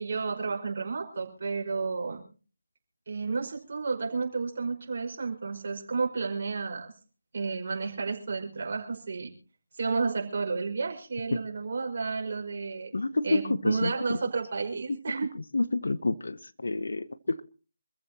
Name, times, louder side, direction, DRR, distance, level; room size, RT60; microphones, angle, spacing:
voice 1, 0.0-2.2 3.1-6.9 7.3-9.3 9.7-12.9 13.2-15.3, right 4 dB, 50° right, 2 dB, 5.2 m, -31 dB
voice 2, 12.9-14.2 14.9-15.0 15.3-17.4, left 2 dB, 70° left, 15 dB, 1.1 m, -29 dB
26.0 x 14.5 x 2.9 m, 0.37 s
figure-of-eight pair, 155°, 0 cm